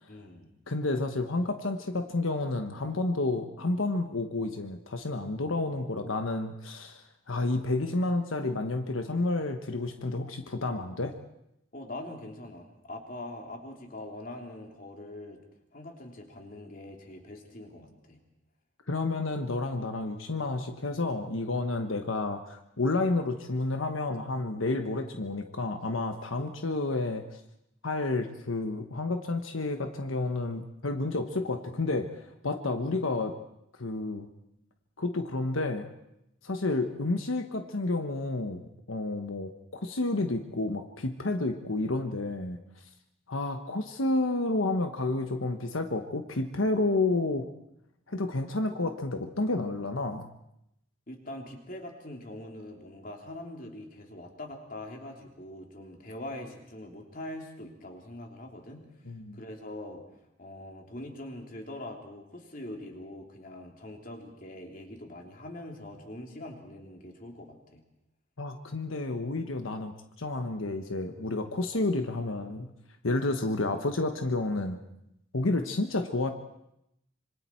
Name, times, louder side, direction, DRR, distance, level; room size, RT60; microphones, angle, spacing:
voice 1, 0.1-0.5 11.7-15.4 15.7-18.2 51.1-58.9 59.3-60.0 60.4-67.8, left 1 dB, 45° left, 2 dB, 3.2 m, -43 dB
voice 2, 0.7-11.1 18.9-27.2 27.8-33.3 33.8-34.3 35.0-35.9 36.4-42.6 43.3-47.5 48.1-50.3 59.1-59.4 68.4-69.9 70.2-72.7 73.0-74.8 75.3-76.3, left 2 dB, 90° left, 7 dB, 1.3 m, -30 dB
26.0 x 25.0 x 4.6 m, 0.81 s
head